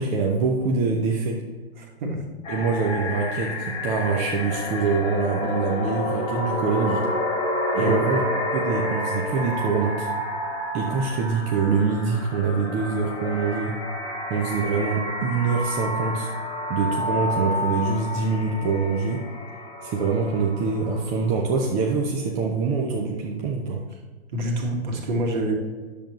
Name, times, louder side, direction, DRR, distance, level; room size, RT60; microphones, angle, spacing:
voice 1, 0.0-1.4 2.5-7.0 7.7-8.2 8.5-10.1 10.7-13.8 14.3-16.3 16.7-19.2 19.8-23.8, right 4 dB, 20° right, -1 dB, 0.7 m, -24 dB
voice 2, 1.8-2.2 7.8-8.1 24.3-25.5, right 1 dB, 45° right, 0 dB, 2.1 m, -26 dB
sound 1, 2.4-21.3, left 1 dB, 15° left, 1.6 m, -30 dB
10.0 x 7.4 x 3.1 m, 1.4 s
figure-of-eight pair, 120°, 32 cm